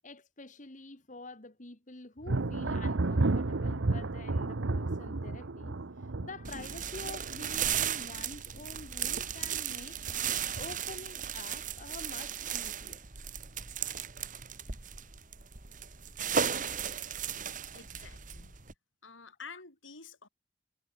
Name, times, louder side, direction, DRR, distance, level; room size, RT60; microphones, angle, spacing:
voice 1, 0.0-10.0 10.5-13.1 19.5-19.6, left 2 dB, 40° left, 1.9 m, -47 dB
Thunder, 2.2-8.7 9.0-9.6 10.1-10.9, right 2 dB, 85° right, 1.0 m, -33 dB
sound 1, 6.4-18.7, right 8 dB, 40° right, 2.2 m, -36 dB
voice 2, 17.7-18.6 19.0-20.3, left 5 dB, 85° left, 5.9 m, -49 dB
head